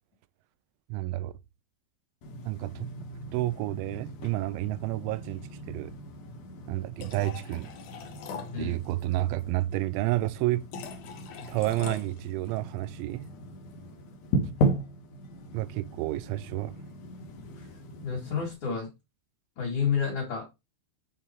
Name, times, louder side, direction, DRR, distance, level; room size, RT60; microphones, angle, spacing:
voice 1, 0.9-1.3 2.5-2.9 3.3-5.9 6.7-7.7 8.6-10.6 11.5-13.3 15.5-16.7, right 17 dB, 90° right, 3.0 m, -30 dB
sound 1, 2.2-18.5, right 1 dB, 70° left, 2.0 m, -36 dB
voice 2, 18.0-18.9 19.6-20.4, left 6 dB, 50° left, 2.9 m, -29 dB
9.6 x 4.5 x 4.4 m
omnidirectional pair, 5.3 m